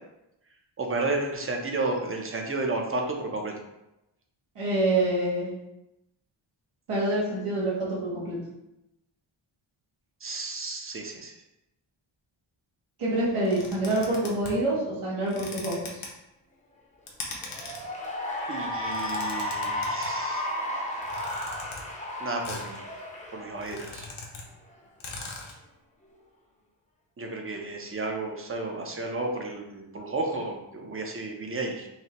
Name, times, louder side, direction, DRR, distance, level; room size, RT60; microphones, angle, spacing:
voice 1, 0.8-3.5 10.2-11.3 18.5-20.5 22.2-22.9 23.3-24.1 27.2-31.9, right 2 dB, 25° right, 2 dB, 0.6 m, -32 dB
voice 2, 4.5-5.5 6.9-8.4 13.0-16.0, right 1 dB, 90° right, -8 dB, 1.4 m, -26 dB
sound 1, 13.4-14.6 15.2-16.1 17.1-17.8 18.7-20.1 21.0-21.8 22.4-22.8 23.1-23.2 23.5-24.4 24.7-24.8 25.0-25.6, left 3 dB, 70° left, 0.9 m, -40 dB
Cheering / Applause, 17.4-24.1, left 1 dB, 15° left, 0.6 m, -33 dB
5.7 x 2.1 x 2.9 m, 0.89 s
wide cardioid pair, 140°, 50 cm